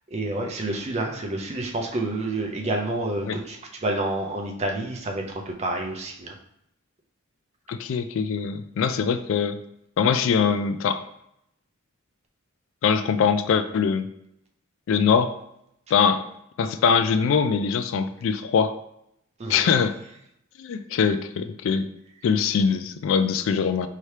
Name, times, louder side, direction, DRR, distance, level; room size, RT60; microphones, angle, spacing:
voice 1, 0.1-6.3 19.4-19.7, right 2 dB, 30° right, 1 dB, 0.6 m, -29 dB
voice 2, 7.7-9.6 10.0-11.0 12.8-14.1 14.9-15.3 15.9-16.3 16.6-18.8 19.5-20.0 20.6-21.9 22.2-23.9, left 6 dB, 65° left, 11 dB, 0.3 m, -22 dB
4.6 x 2.8 x 3.2 m, 0.78 s
head